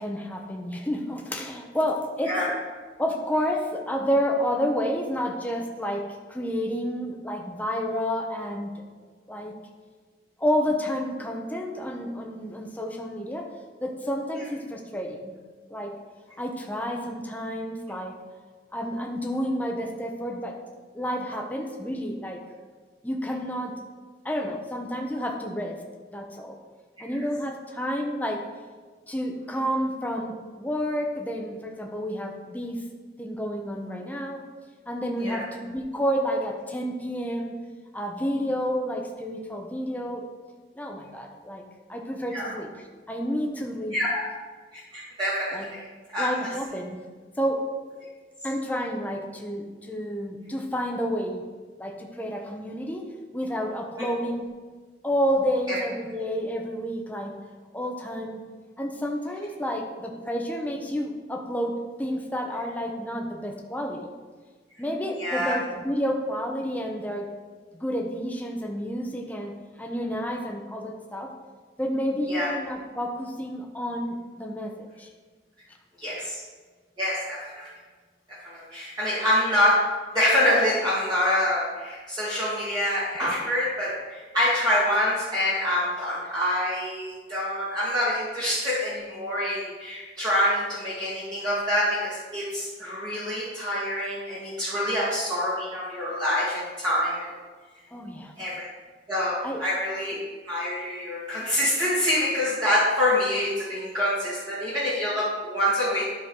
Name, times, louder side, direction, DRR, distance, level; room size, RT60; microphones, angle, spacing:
voice 1, 0.0-2.4 3.0-8.7 9.3-9.5 10.4-13.5 13.8-15.3 15.7-15.9 16.4-18.2 18.7-20.6 20.9-22.4 23.0-23.8 24.2-25.8 26.1-26.6 27.0-28.5 29.1-32.8 33.2-34.4 34.9-37.6 37.9-40.2 40.8-44.0 45.5-45.7 46.2-47.0 47.4-47.7 48.4-51.4 51.8-54.5 55.0-57.3 57.7-58.4 58.8-64.1 64.8-67.3 67.7-71.3 71.8-75.1 97.9-98.3 99.4-99.6, equal, 10° left, 1 dB, 0.8 m, -30 dB
voice 2, 43.9-44.2 44.9-45.8 46.1-46.3 54.0-54.1 55.7-55.8 65.2-65.5 72.3-72.5 76.0-76.4 77.0-77.7 78.3-79.8 80.1-97.3 98.4-98.7 99.1-100.1 100.4-106.1, left 1 dB, 25° right, -9 dB, 1.7 m, -26 dB
12.0 x 4.6 x 3.7 m, 1.5 s
head